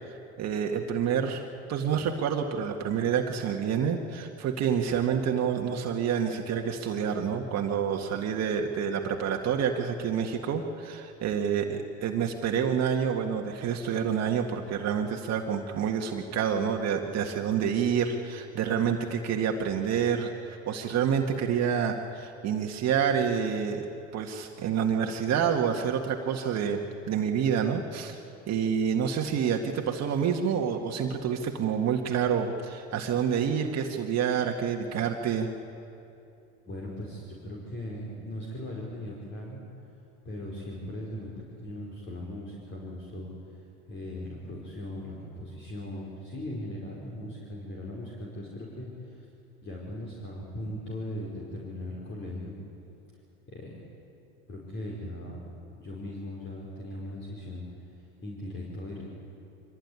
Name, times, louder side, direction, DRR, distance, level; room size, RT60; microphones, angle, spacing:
voice 1, 0.1-23.9 24.1-26.8 27.1-28.2 28.5-35.5, right 7 dB, 45° right, 2 dB, 1.8 m, -28 dB
voice 2, 36.7-39.6 40.3-41.3 41.6-43.3 43.9-49.3 49.6-52.6 53.5-53.7 54.5-55.4 55.8-57.6 58.2-59.0, left 1 dB, 35° left, -3 dB, 5.2 m, -38 dB
24.5 x 17.5 x 9.7 m, 2.7 s
supercardioid pair, 95°, 36 cm